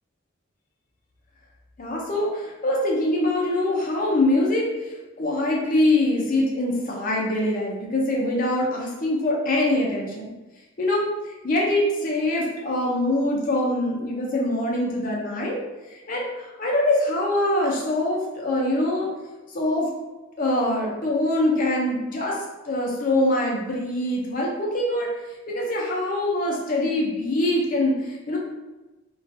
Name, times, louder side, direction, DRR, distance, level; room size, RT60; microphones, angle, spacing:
voice 1, 1.8-4.6 5.2-10.3 10.8-15.6 16.1-19.1 19.5-19.9 20.4-22.4 22.7-25.1 25.5-28.4, left 1 dB, 40° left, -3 dB, 0.5 m, -23 dB
2.3 x 2.3 x 2.6 m, 1.1 s
head